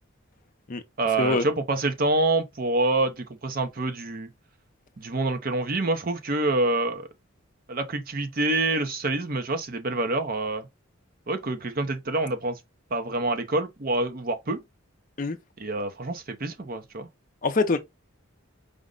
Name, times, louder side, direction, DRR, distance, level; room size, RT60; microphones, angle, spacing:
voice 1, 1.0-4.3 5.0-7.1 7.7-10.7 11.3-12.6 12.9-14.6 15.6-17.1, right 2 dB, 40° right, 0.6 m, -26 dB
voice 2, 17.4-17.8, left 3 dB, 40° left, 0.5 m, -24 dB
5.0 x 2.1 x 3.7 m
head